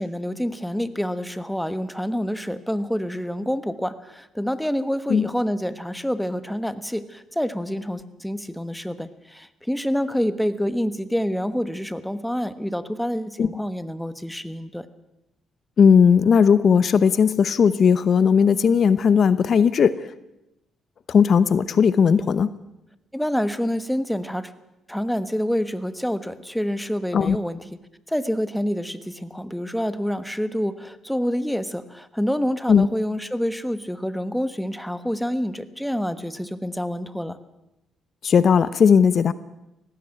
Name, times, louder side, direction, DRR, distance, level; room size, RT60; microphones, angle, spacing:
voice 1, 0.0-14.9 23.1-24.5 24.9-27.6 28.1-37.4, equal, 5° left, 13 dB, 1.3 m, -27 dB
voice 2, 15.8-20.1 21.1-22.5 27.1-27.4 32.7-32.9 38.2-39.3, left 6 dB, 55° left, 16 dB, 0.8 m, -17 dB
18.5 x 16.0 x 9.0 m, 0.94 s
cardioid pair, 90°, 0 cm